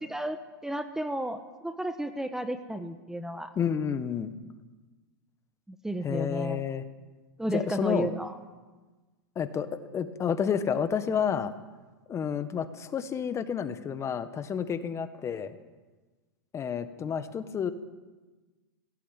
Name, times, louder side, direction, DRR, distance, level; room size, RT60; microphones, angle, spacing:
voice 1, 0.0-3.5 5.7-6.6 7.4-8.4, right 1 dB, 5° right, 9 dB, 1.2 m, -33 dB
voice 2, 3.6-4.3 6.0-6.8 7.5-8.1 9.3-11.5 12.1-15.5 16.5-17.7, left 7 dB, 25° left, 11 dB, 1.5 m, -30 dB
18.0 x 18.0 x 9.2 m, 1.3 s
hypercardioid pair, 115°, 12 cm